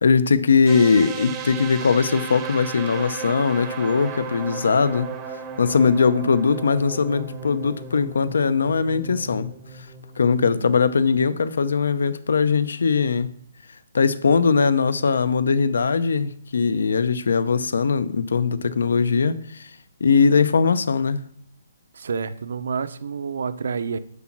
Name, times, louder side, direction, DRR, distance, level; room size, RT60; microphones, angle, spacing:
voice 1, 0.0-5.1 5.6-9.5 10.2-13.3 13.9-19.7 20.0-21.2, left 5 dB, 70° left, 0.7 m, -20 dB
sound 1, 0.7-10.5, right 4 dB, 10° right, 0.7 m, -35 dB
voice 2, 10.3-10.8 21.9-24.0, right 5 dB, 60° right, 0.7 m, -29 dB
8.1 x 6.0 x 5.9 m
hypercardioid pair, 175°, 0 cm